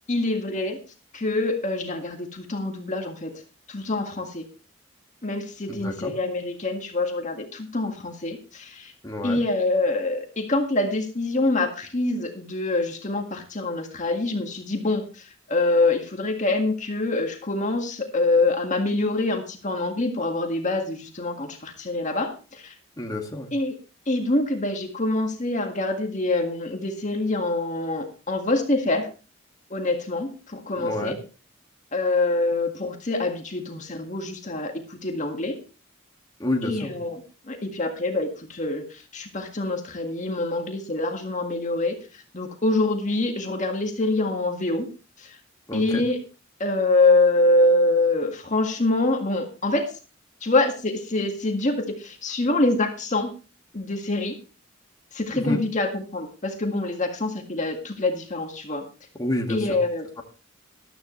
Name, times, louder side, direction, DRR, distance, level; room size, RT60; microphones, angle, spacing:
voice 1, 0.1-0.8 1.1-3.3 3.7-4.5 5.2-8.9 9.2-22.7 23.5-23.7 24.1-29.1 29.7-31.2 31.9-35.6 36.6-44.9 45.2-45.4 45.7-46.2 46.6-50.0 50.4-53.3 53.7-54.4 55.1-58.9 59.5-60.1, left 2 dB, 40° left, 4 dB, 1.8 m, -25 dB
voice 2, 5.7-6.1 9.0-9.4 23.0-23.5 30.7-31.2 36.4-36.9 45.7-46.0 55.3-55.6 59.2-59.7, left 1 dB, 20° left, 1 dB, 1.9 m, -29 dB
14.0 x 12.5 x 3.2 m, 0.33 s
head